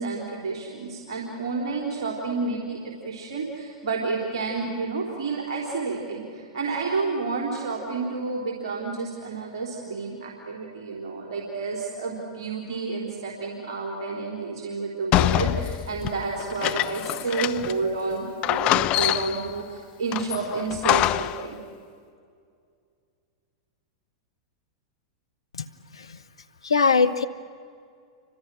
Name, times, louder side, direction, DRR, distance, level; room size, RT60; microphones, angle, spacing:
voice 1, 0.0-21.6, right 4 dB, 70° right, 0 dB, 4.1 m, -30 dB
sound 1, 15.1-17.9 18.1-18.2 18.4-19.5 20.1-21.5, left 16 dB, 40° left, 0.6 m, -25 dB
voice 2, 26.6-27.3, left 5 dB, 85° left, 13 dB, 1.2 m, -21 dB
30.0 x 25.0 x 6.5 m, 2.3 s
hypercardioid pair, 100°, 3 cm